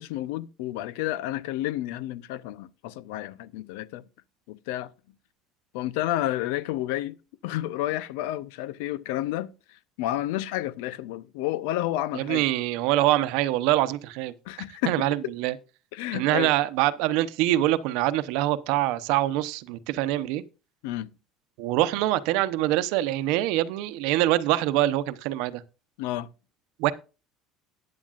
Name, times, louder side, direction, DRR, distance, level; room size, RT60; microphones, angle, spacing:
voice 1, 0.0-4.0 4.5-4.9 5.7-7.2 7.4-12.5 14.5-15.3 15.9-16.5 20.8-21.1 26.0-26.3, left 14 dB, 85° left, 0.7 m, -31 dB
voice 2, 12.2-14.3 14.9-15.5 16.1-20.4 21.6-25.6 26.8-26.9, right 15 dB, 70° right, 0.8 m, -24 dB
15.0 x 9.7 x 2.5 m
cardioid pair, 155°, 0 cm